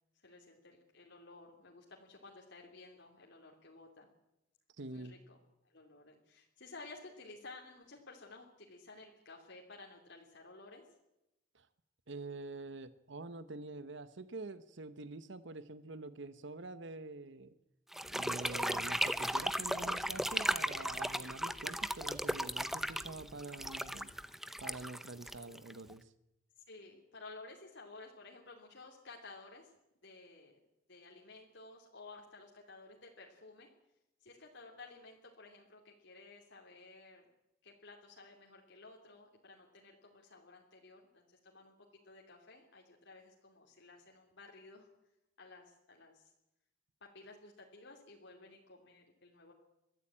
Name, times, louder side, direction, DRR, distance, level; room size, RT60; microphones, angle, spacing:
voice 1, 0.2-4.1 4.9-5.4 5.7-10.8 26.7-29.7 30.0-30.6 30.9-33.7 34.2-37.2 37.6-41.7 42.0-44.9 45.4-46.3 47.0-49.5, left 3 dB, 60° left, 0 dB, 2.9 m, -54 dB
voice 2, 4.8-5.1 11.5-11.7 12.1-17.5 18.1-24.1 24.6-26.1, right 2 dB, 65° right, 13 dB, 1.0 m, -46 dB
sound 1, 17.9-25.9, equal, ahead, 0.8 m, -36 dB
23.5 x 14.5 x 8.8 m, 0.90 s
head